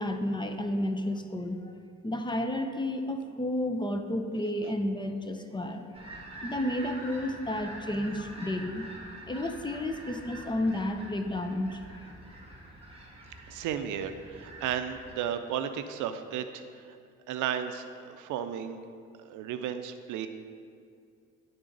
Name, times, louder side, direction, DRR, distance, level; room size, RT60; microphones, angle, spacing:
voice 1, 0.0-1.6 2.0-5.8 6.4-8.9 9.3-11.9, left 1 dB, 15° left, 6 dB, 0.6 m, -31 dB
sound 1, 5.9-15.2, right 1 dB, 20° right, 1.4 m, -46 dB
voice 2, 13.5-17.0 17.3-18.8 19.2-20.3, right 9 dB, 85° right, 9 dB, 0.5 m, -34 dB
11.0 x 3.9 x 3.9 m, 2.3 s
cardioid pair, 90°, 30 cm